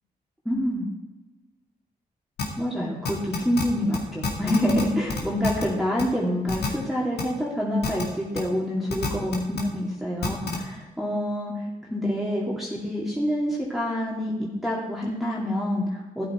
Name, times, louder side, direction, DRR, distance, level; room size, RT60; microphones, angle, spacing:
voice 1, 0.4-0.9 2.6-11.5 11.8-16.3, equal, ahead, -6 dB, 2.5 m, -27 dB
sound 1, 2.4-2.5 3.0-3.6 3.9-4.0 4.2-4.8 5.1-5.6 6.0-6.1 6.5-6.7 7.2-7.3 7.8-8.0 8.3-8.4 8.9-9.6 10.2-10.6, left 4 dB, 85° left, 2.2 m, -27 dB
12.0 x 9.7 x 4.4 m, 1.1 s
cardioid pair, 65°, 16 cm